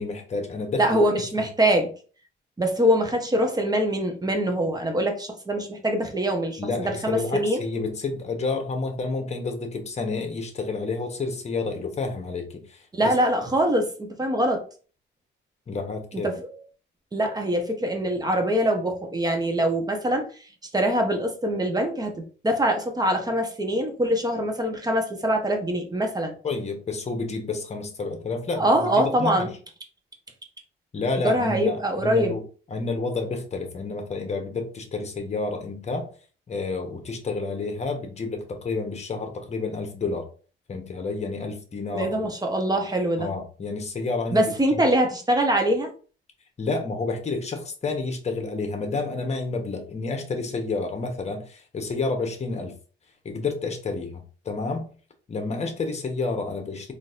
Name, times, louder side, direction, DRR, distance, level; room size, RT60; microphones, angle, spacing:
voice 1, 0.0-0.9 1.4-1.5 6.6-13.1 15.7-16.3 26.4-29.5 30.9-36.1 36.5-40.3 40.7-42.3 43.2-44.8 46.6-52.7 53.2-54.9 55.3-56.9, left 3 dB, 35° left, 4 dB, 1.0 m, -30 dB
voice 2, 0.8-1.9 2.6-7.6 12.9-14.6 16.2-16.3 17.1-20.3 20.7-26.3 28.6-29.5 31.2-32.3 41.9-43.3 44.3-45.9, right 1 dB, 20° right, 3 dB, 0.9 m, -23 dB
3.8 x 2.7 x 2.5 m, 0.39 s
cardioid pair, 90°, 20 cm